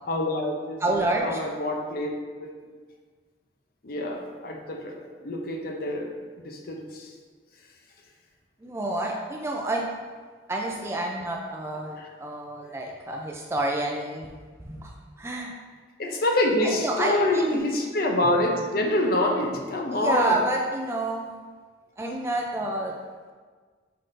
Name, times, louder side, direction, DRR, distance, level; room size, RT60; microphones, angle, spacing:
voice 1, 0.0-2.1 2.4-2.5 3.8-6.1 6.4-7.1 16.0-20.4, left 1 dB, 55° left, 1 dB, 0.6 m, -26 dB
voice 2, 0.8-1.4 8.6-9.9 10.5-14.3 14.6-15.5 16.6-17.7 19.9-21.3 22.0-23.0, right 1 dB, 15° right, 0 dB, 0.3 m, -28 dB
5.7 x 3.6 x 2.5 m, 1.5 s
head